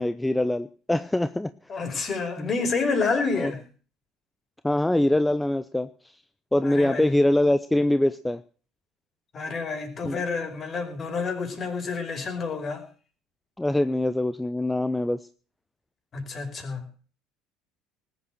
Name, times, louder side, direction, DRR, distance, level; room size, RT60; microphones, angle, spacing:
voice 1, 0.0-1.5 2.4-2.5 3.4-3.5 4.6-5.9 6.5-8.4 10.0-10.2 13.6-15.2, left 1 dB, 10° left, 13 dB, 0.8 m, -23 dB
voice 2, 1.7-3.6 6.6-7.1 9.3-12.8 16.1-16.9, left 4 dB, 40° left, 6 dB, 5.2 m, -29 dB
19.5 x 8.6 x 6.3 m, 0.41 s
hypercardioid pair, 65°, 0 cm